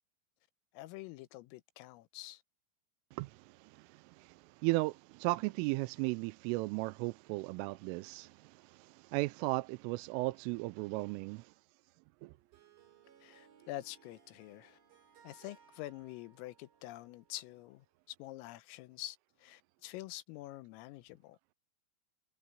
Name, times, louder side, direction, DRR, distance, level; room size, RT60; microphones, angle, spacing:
voice 1, 0.7-2.4 13.2-14.8 15.2-21.4, left 16 dB, 90° left, 3.6 m, -47 dB
voice 2, 3.1-11.5 12.2-12.3, right 23 dB, 85° right, 3.1 m, -36 dB
Harp, 12.2-18.0, right 7 dB, 60° right, 7.4 m, -64 dB
omnidirectional pair, 5.8 m